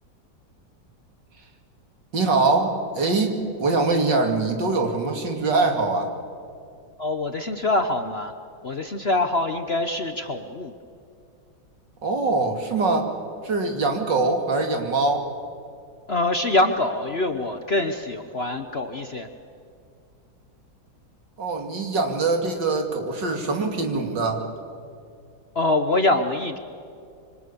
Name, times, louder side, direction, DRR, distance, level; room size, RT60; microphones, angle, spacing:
voice 1, 2.1-6.1 12.0-13.1 13.4-15.3 21.4-24.4, right 3 dB, 65° right, 4 dB, 3.1 m, -23 dB
voice 2, 7.0-8.3 8.6-10.7 16.1-19.3 25.5-26.6, left 2 dB, 40° left, 7 dB, 1.0 m, -24 dB
26.0 x 25.0 x 7.0 m, 2.5 s
omnidirectional pair, 2.0 m